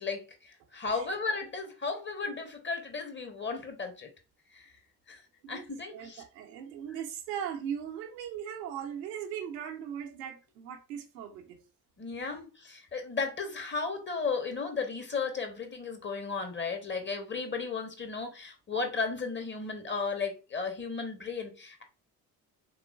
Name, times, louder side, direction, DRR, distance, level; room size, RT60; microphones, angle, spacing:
voice 1, 0.0-4.1 4.5-4.7 5.1-5.2 5.5-6.2 12.0-21.8, left 4 dB, 25° left, 0.9 m, -35 dB
voice 2, 5.4-11.6, right 8 dB, 75° right, 0.7 m, -39 dB
3.6 x 3.1 x 2.3 m
figure-of-eight pair, 45°, 49 cm